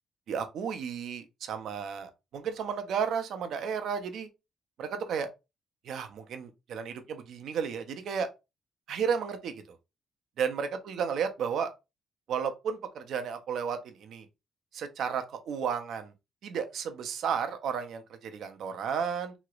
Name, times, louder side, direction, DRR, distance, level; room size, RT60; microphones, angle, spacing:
voice 1, 0.3-4.3 4.8-5.3 5.8-8.3 8.9-9.8 10.4-11.7 12.3-14.3 14.7-16.1 16.4-19.3, right 7 dB, 75° right, 0.6 m, -33 dB
3.1 x 2.9 x 2.4 m
cardioid pair, 90°, 0 cm